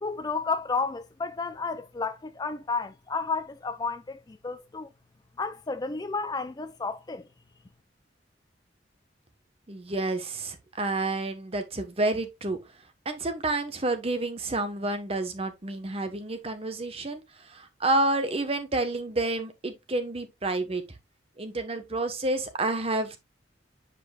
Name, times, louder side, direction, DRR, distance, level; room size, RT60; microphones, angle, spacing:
voice 1, 0.0-4.9 5.4-7.3, left 4 dB, 20° left, 0.4 m, -32 dB
voice 2, 9.7-12.6 13.0-20.8 21.4-23.2, right 2 dB, 30° right, 1.1 m, -29 dB
8.5 x 5.2 x 2.3 m
head